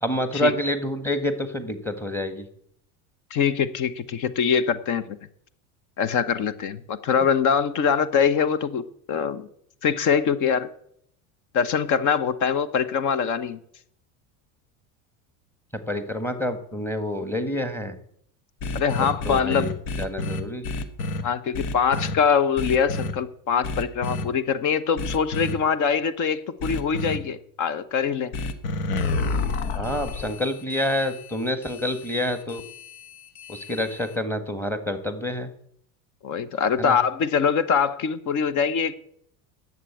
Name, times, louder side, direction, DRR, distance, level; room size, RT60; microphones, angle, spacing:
voice 1, 0.0-2.4 15.9-17.9 19.2-19.7 20.0-20.7 29.7-32.6 33.5-35.5 36.8-36.9, left 1 dB, 5° left, 9 dB, 1.6 m, -27 dB
voice 2, 3.3-5.2 6.0-8.8 9.1-9.5 9.8-10.7 11.5-13.6 18.7-19.7 21.2-28.3 36.2-39.0, left 6 dB, 45° left, 15 dB, 1.0 m, -23 dB
sound 1, 18.6-21.2 21.5-22.1 22.6-23.1 23.6-24.2 25.0-25.5 26.6-27.2 28.3-34.1, left 3 dB, 75° left, 1.5 m, -30 dB
11.0 x 7.7 x 8.2 m, 0.68 s
supercardioid pair, 115°, 43 cm